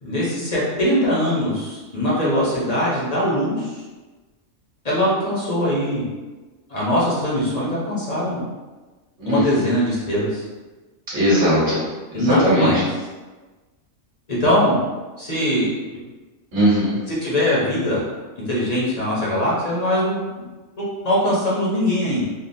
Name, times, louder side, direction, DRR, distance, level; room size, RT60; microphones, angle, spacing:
voice 1, 0.0-3.8 4.8-6.0 6.7-8.4 9.3-10.4 12.1-12.8 14.3-14.8 15.2-16.0 17.1-18.0 18.4-20.2 20.8-22.2, equal, 35° left, -7 dB, 0.9 m, -21 dB
voice 2, 11.1-11.8 12.1-12.7 16.5-16.9, equal, 50° right, -11 dB, 1.5 m, -19 dB
3.7 x 2.3 x 2.7 m, 1.2 s
omnidirectional pair, 1.4 m